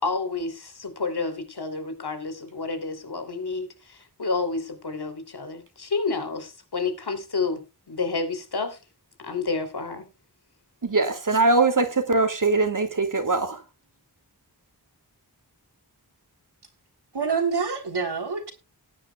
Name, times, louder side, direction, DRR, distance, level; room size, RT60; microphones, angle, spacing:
voice 1, 0.0-8.8 9.2-10.1, left 4 dB, 75° left, 3.2 m, -30 dB
voice 2, 10.8-13.6, right 3 dB, 55° right, 2.6 m, -22 dB
voice 3, 17.1-18.5, right 5 dB, 85° right, 3.6 m, -26 dB
18.5 x 10.5 x 2.3 m
wide cardioid pair, 70°, 39 cm